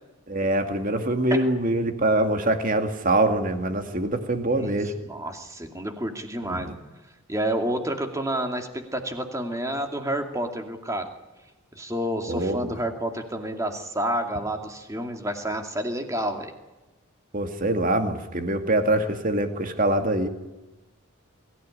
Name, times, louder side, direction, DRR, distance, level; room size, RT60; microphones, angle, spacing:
voice 1, 0.3-4.9 6.5-6.7 12.3-12.7 17.3-20.3, right 1 dB, 40° right, 6 dB, 2.3 m, -24 dB
voice 2, 5.1-6.8 7.3-11.1 11.7-16.5, right 1 dB, 15° right, 4 dB, 2.4 m, -29 dB
23.0 x 15.5 x 9.9 m, 1.1 s
head